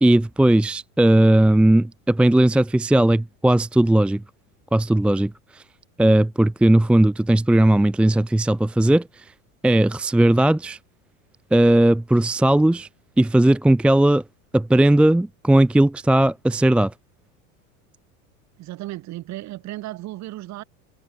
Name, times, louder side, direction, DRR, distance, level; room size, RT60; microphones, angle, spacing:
voice 1, 0.0-4.2 4.7-5.6 6.0-9.3 9.6-10.8 11.5-12.9 13.2-14.2 14.5-16.9, right 1 dB, 5° right, 0.7 m, -17 dB
voice 2, 18.6-20.6, right 16 dB, 40° right, 6.2 m, -34 dB
supercardioid pair, 140°, 42 cm